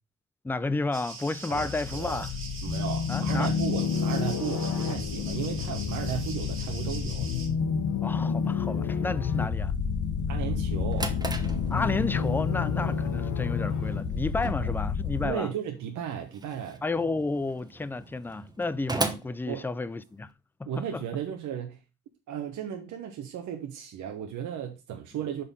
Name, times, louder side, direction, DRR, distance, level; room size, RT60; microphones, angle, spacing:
voice 1, 0.4-2.3 3.1-3.5 8.0-9.7 11.7-15.5 16.8-20.3 20.6-21.0, left 3 dB, 5° left, 0.3 m, -31 dB
sound 1, 0.9-7.5, right 4 dB, 40° right, 1.7 m, -42 dB
sound 2, 1.5-15.3, left 6 dB, 75° left, 1.4 m, -29 dB
voice 2, 1.5-2.2 2.6-7.3 10.3-11.1 14.4-14.7 15.2-16.8 19.5-19.7 20.7-21.8 22.3-25.4, right 9 dB, 75° right, 1.0 m, -35 dB
Drawer open or close, 10.6-20.3, right 3 dB, 15° right, 0.9 m, -39 dB
5.4 x 4.3 x 5.3 m
cardioid pair, 90°, 30 cm